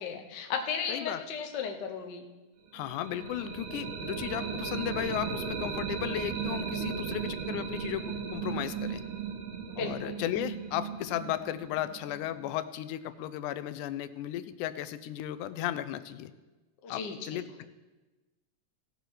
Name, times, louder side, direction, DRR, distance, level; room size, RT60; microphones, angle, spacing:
voice 1, 0.0-2.2 9.8-10.2 16.8-17.5, left 6 dB, 65° left, 3 dB, 1.0 m, -35 dB
voice 2, 0.9-1.2 2.7-9.0 9.8-16.3 16.9-17.7, left 12 dB, 90° left, 13 dB, 2.1 m, -35 dB
sound 1, 2.7-12.5, right 6 dB, 85° right, 2.5 m, -36 dB
17.0 x 6.7 x 4.6 m, 1.2 s
omnidirectional pair, 3.5 m